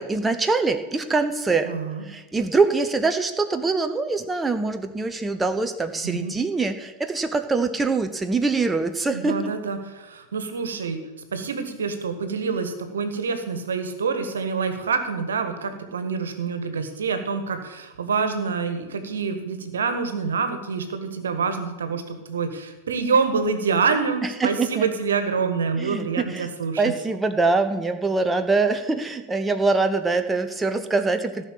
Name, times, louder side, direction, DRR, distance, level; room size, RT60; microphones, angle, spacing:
voice 1, 0.0-1.7 2.0-9.5 24.2-24.9 25.8-26.5 26.8-31.4, right 3 dB, 10° right, 7 dB, 0.9 m, -24 dB
voice 2, 1.6-2.0 6.0-6.3 9.1-11.0 11.3-26.8, right 5 dB, 65° right, 8 dB, 1.7 m, -26 dB
15.0 x 6.4 x 8.5 m, 1.2 s
figure-of-eight pair, 90°, 0 cm